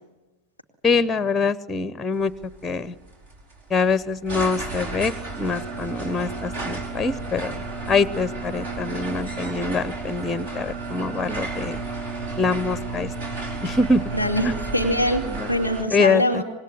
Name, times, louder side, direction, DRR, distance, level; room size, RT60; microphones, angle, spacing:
voice 1, 0.8-2.3 2.6-2.9 3.7-7.5 7.9-11.8 12.4-13.1 13.6-14.0 14.4-14.5 15.3-15.5 15.9-16.4, left 4 dB, 10° left, 18 dB, 0.9 m, -24 dB
sound 1, 2.2-15.8, right 3 dB, 55° right, 5.1 m, -32 dB
voice 2, 14.1-16.4, equal, 90° right, 4 dB, 2.3 m, -23 dB
26.0 x 20.5 x 9.7 m, 1.2 s
figure-of-eight pair, 90°, 0 cm